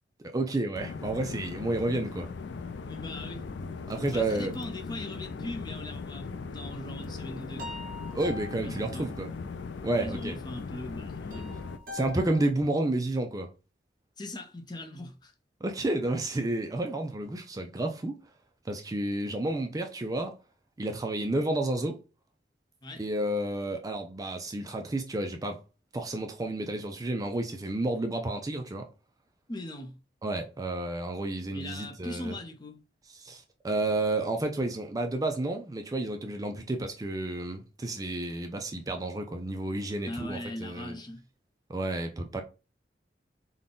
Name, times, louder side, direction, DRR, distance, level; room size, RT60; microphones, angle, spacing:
voice 1, 0.3-2.3 3.9-4.6 8.1-9.3 9.8-10.4 11.9-13.5 15.6-18.2 18.7-20.3 20.8-22.0 23.0-25.6 25.9-28.9 30.2-32.4 33.1-41.0 41.7-42.4, right 2 dB, 20° right, 0.4 m, -31 dB
sound 1, 0.7-11.8, left 4 dB, 75° left, 0.4 m, -39 dB
voice 2, 2.8-3.4 4.1-7.8 8.6-9.1 9.9-11.6 14.2-15.3 22.8-23.0 29.5-30.0 31.5-32.8 40.1-41.2, left 1 dB, 25° left, 0.6 m, -40 dB
sound 2, 6.9-12.5, left 3 dB, 55° right, 1.4 m, -44 dB
3.9 x 2.2 x 3.7 m
head